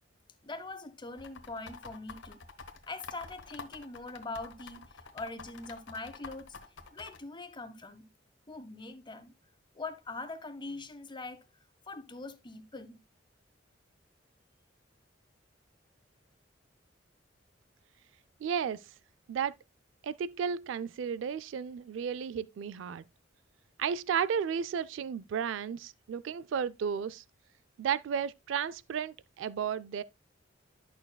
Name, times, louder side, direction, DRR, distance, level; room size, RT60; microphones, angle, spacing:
voice 1, 0.4-2.4 2.9-6.6 6.9-8.1 8.5-9.3 9.7-11.4 11.9-13.0, left 3 dB, 25° left, 0.8 m, -42 dB
sound 1, 1.2-7.2, left 5 dB, 80° left, 1.1 m, -47 dB
voice 2, 18.4-18.8 19.3-19.5 20.0-23.0 23.8-27.2 27.8-30.0, right 7 dB, 80° right, 0.3 m, -33 dB
11.0 x 6.4 x 2.2 m
head